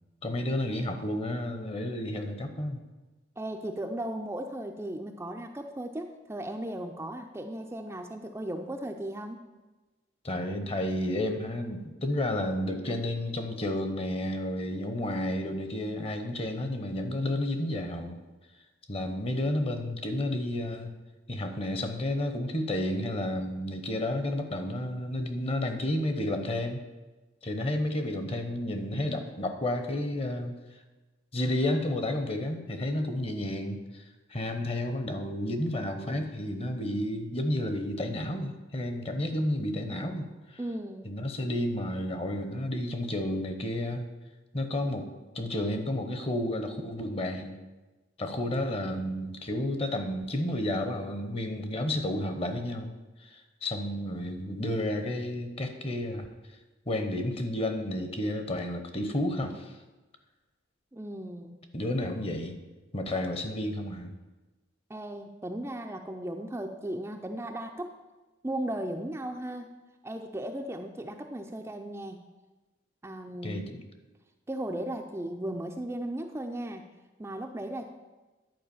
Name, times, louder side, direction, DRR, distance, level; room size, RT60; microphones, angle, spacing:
voice 1, 0.2-2.8 10.2-18.2 18.9-20.9 21.3-26.8 27.4-30.6 31.3-34.0 34.3-40.6 41.0-44.1 44.5-45.1 45.3-47.6 48.2-52.9 53.2-56.3 56.9-59.7 61.7-62.6 62.9-64.2 73.4-73.8, left 1 dB, 30° left, 7 dB, 0.9 m, -31 dB
voice 2, 3.4-9.4 40.6-41.1 60.9-61.6 64.9-68.0 68.4-69.7 70.0-72.3 73.0-73.7 74.5-76.8 77.2-77.9, right 1 dB, 15° right, 3 dB, 0.5 m, -36 dB
11.0 x 4.8 x 7.1 m, 1.2 s
head